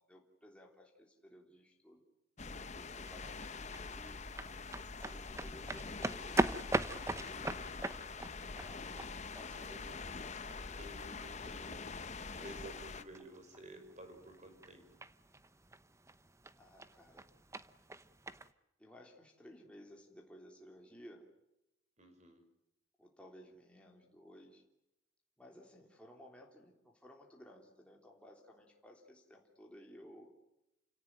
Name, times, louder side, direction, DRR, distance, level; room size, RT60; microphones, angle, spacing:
voice 1, 0.0-2.0 2.7-4.4 5.1-7.7 8.5-9.8 10.5-10.8 16.6-17.3 18.8-21.3 23.0-24.6 25.4-30.3, equal, 5° left, 0 dB, 3.4 m, -57 dB
sound 1, 2.4-13.0, left 4 dB, 35° left, 0.9 m, -45 dB
sound 2, 2.8-18.5, right 2 dB, 15° right, 0.8 m, -42 dB
voice 2, 10.8-11.9 12.4-14.9 22.0-22.4, right 1 dB, 35° right, 6 dB, 5.6 m, -53 dB
29.5 x 17.5 x 9.2 m, 0.88 s
head